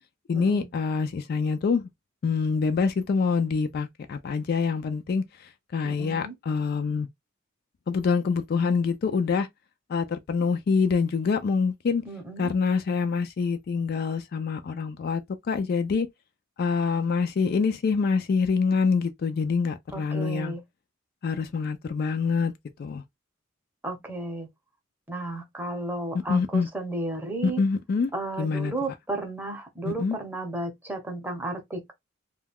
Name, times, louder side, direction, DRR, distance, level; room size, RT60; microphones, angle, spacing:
voice 1, 0.3-1.9 2.2-5.2 5.7-7.1 7.9-9.5 9.9-12.0 12.4-15.2 15.5-16.1 16.6-20.5 21.2-22.5 22.8-23.0 26.3-26.7 27.4-28.1 28.4-28.7 29.8-30.2, left 5 dB, 50° left, 0.3 m, -25 dB
voice 2, 5.8-6.3 12.1-12.5 19.9-20.6 23.8-24.5 25.1-27.6 28.1-31.9, right 2 dB, 10° right, 0.7 m, -33 dB
2.2 x 2.2 x 3.4 m
head